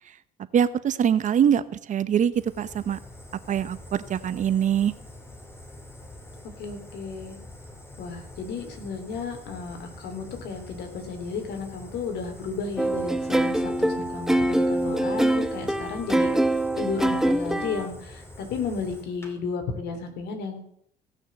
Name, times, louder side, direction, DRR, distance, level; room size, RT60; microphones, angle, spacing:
voice 1, 0.5-3.0 3.5-4.9, right 9 dB, 50° right, 14 dB, 0.9 m, -23 dB
Fire, 2.3-19.3, left 1 dB, 15° left, 2.9 m, -45 dB
voice 2, 6.6-7.4 8.0-16.3 16.8-20.6, left 4 dB, 75° left, 5 dB, 3.3 m, -33 dB
sound 1, 12.8-17.9, right 1 dB, 5° right, 0.8 m, -24 dB
17.0 x 6.5 x 7.5 m, 0.68 s
cardioid pair, 110°, 17 cm